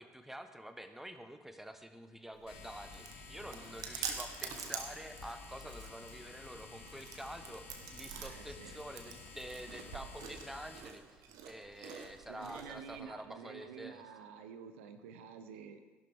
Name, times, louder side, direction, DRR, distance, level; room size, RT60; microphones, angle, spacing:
voice 1, 0.0-11.0 11.4-14.0, right 1 dB, 5° right, 8 dB, 1.2 m, -48 dB
Chewing mastication, 2.3-13.0, right 7 dB, 60° right, 1.4 m, -47 dB
sound 1, 2.5-10.8, left 4 dB, 75° left, 2.0 m, -52 dB
voice 2, 8.1-8.8 12.3-15.8, right 7 dB, 75° right, 9 dB, 0.8 m, -49 dB
16.0 x 11.5 x 3.6 m, 1.3 s
figure-of-eight pair, 55°, 7 cm